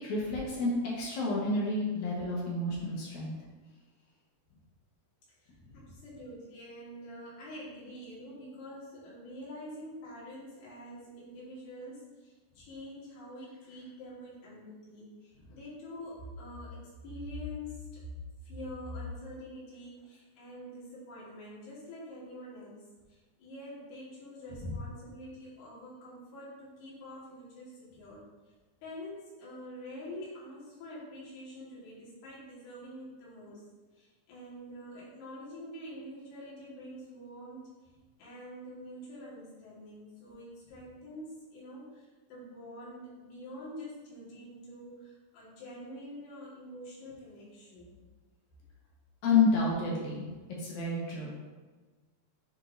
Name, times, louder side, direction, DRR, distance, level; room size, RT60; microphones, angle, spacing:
voice 1, 0.0-3.3 49.2-50.2 50.6-51.3, left 3 dB, 60° left, -4 dB, 2.3 m, -29 dB
voice 2, 5.4-17.9 18.4-22.8 23.1-28.2 28.8-33.6 34.0-37.6 38.2-48.0, left 1 dB, 80° left, -7 dB, 3.8 m, -46 dB
10.0 x 3.7 x 2.6 m, 1.3 s
omnidirectional pair, 4.5 m